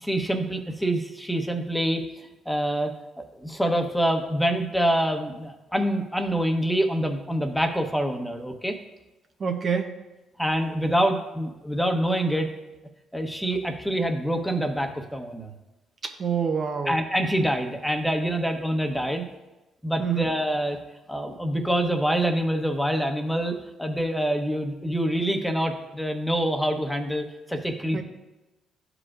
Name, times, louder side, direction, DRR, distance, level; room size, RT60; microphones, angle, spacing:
voice 1, 0.0-2.0 2.5-2.9 3.2-8.8 10.4-12.5 13.1-15.5 16.9-19.3 19.8-20.8 21.1-28.0, right 1 dB, 5° left, 4 dB, 1.0 m, -26 dB
voice 2, 9.4-10.0 16.0-17.0 20.0-20.3 27.9-28.0, right 7 dB, 50° right, 5 dB, 0.7 m, -26 dB
12.5 x 4.9 x 2.5 m, 1.0 s
supercardioid pair, 70°, 0 cm